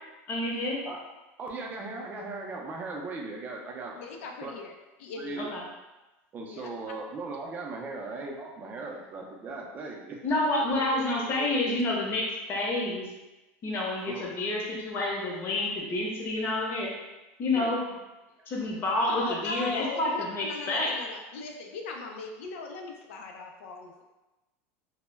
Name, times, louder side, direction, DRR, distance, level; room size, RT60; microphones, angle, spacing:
voice 1, 0.3-0.8 5.4-5.6 10.2-13.1 13.6-16.9 17.4-17.8 18.5-20.9, left 2 dB, 35° left, -3 dB, 0.7 m, -29 dB
voice 2, 1.4-4.0 4.4-4.5 5.2-5.5 6.3-10.2 11.4-11.5 14.1-14.3 17.5-17.7, right 3 dB, 25° right, 0 dB, 0.4 m, -38 dB
voice 3, 3.9-4.7 5.0-5.4 6.5-7.0 19.0-24.0, left 4 dB, 90° left, 2 dB, 0.4 m, -39 dB
2.1 x 2.0 x 3.2 m, 1.1 s
supercardioid pair, 140°, 7 cm